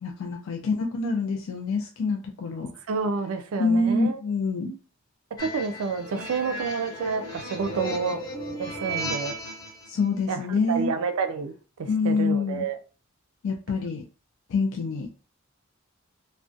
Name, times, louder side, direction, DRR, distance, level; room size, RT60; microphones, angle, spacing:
voice 1, 0.0-2.7 3.6-4.7 9.9-10.9 11.9-12.7 13.4-14.0 14.5-15.1, left 3 dB, 65° left, 0.4 m, -26 dB
voice 2, 2.9-4.2 4.6-4.8 5.4-8.2 8.6-9.3 10.3-11.5 11.8-12.8, right 5 dB, 90° right, 0.4 m, -29 dB
sound 1, 5.4-9.9, right 1 dB, 20° left, 0.7 m, -34 dB
2.4 x 2.1 x 2.5 m
head